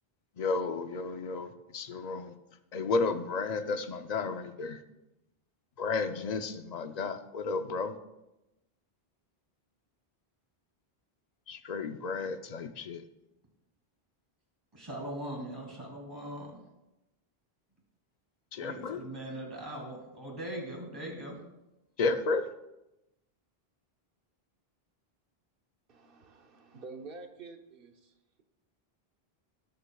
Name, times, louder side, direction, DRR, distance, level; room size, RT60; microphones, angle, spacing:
voice 1, 0.4-2.3 2.7-4.8 5.8-8.0 11.5-13.0 18.5-19.0 22.0-22.5, left 4 dB, 50° left, 9 dB, 0.7 m, -32 dB
voice 2, 14.7-16.6 18.6-21.4, right 1 dB, 20° right, -1 dB, 2.5 m, -40 dB
voice 3, 25.9-28.4, right 3 dB, 65° right, 5 dB, 1.0 m, -48 dB
19.5 x 6.6 x 2.3 m, 0.96 s
omnidirectional pair, 1.0 m